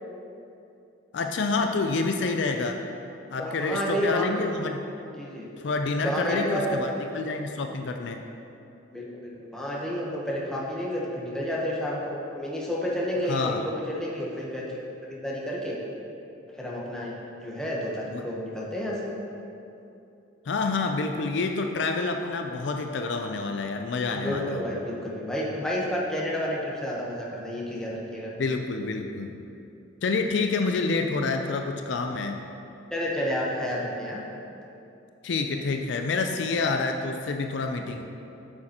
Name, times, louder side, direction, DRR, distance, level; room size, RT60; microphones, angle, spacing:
voice 1, 1.1-2.8 3.3-4.8 5.6-8.2 13.3-13.6 18.1-18.2 20.5-24.6 28.4-29.3 30.0-32.4 35.2-38.0, left 3 dB, 65° left, 5 dB, 0.4 m, -28 dB
voice 2, 3.4-4.3 5.0-5.5 6.0-7.0 8.9-15.8 16.5-19.1 24.1-28.3 32.9-34.2, equal, 5° left, -5 dB, 0.9 m, -30 dB
8.7 x 6.5 x 2.9 m, 2.8 s
head